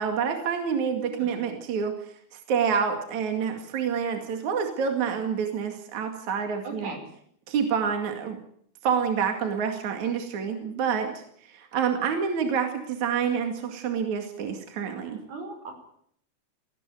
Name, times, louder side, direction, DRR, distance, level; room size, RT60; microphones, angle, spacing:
voice 1, 0.0-6.9 7.5-8.4 8.8-15.2, right 7 dB, 55° right, 5 dB, 3.4 m, -28 dB
voice 2, 1.0-1.4 6.6-7.0 15.3-15.7, right 2 dB, 75° right, 5 dB, 7.2 m, -38 dB
18.5 x 17.5 x 9.2 m, 0.66 s
omnidirectional pair, 4.3 m